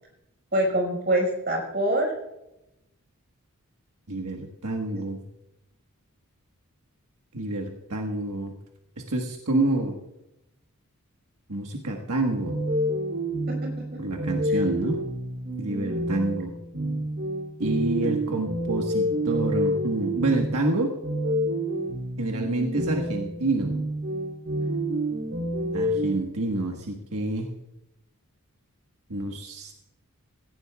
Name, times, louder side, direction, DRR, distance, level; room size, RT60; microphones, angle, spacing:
voice 1, 0.5-2.1 13.5-14.2 14.5-14.6 18.0-18.1, right 1 dB, 45° right, 1 dB, 5.0 m, -26 dB
voice 2, 4.1-5.2 7.3-8.5 9.0-9.9 11.5-12.5 14.0-15.0 15.6-16.5 17.6-20.9 22.2-23.7 25.7-27.5 29.1-29.7, right 2 dB, 85° right, 2 dB, 1.4 m, -28 dB
sound 1, 12.4-26.2, equal, 65° right, 3.1 m, -28 dB
17.5 x 15.5 x 2.3 m, 0.88 s
head